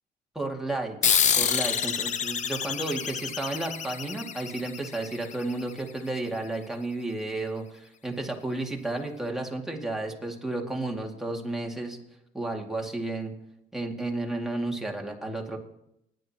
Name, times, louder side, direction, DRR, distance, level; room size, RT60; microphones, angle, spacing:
voice 1, 0.3-12.0 12.3-13.3 13.7-15.6, right 2 dB, ahead, -1 dB, 2.3 m, -32 dB
sound 1, 1.0-6.0, left 8 dB, 45° left, 0.8 m, -28 dB
28.0 x 10.5 x 2.9 m, 0.82 s
cardioid pair, 110°, 17 cm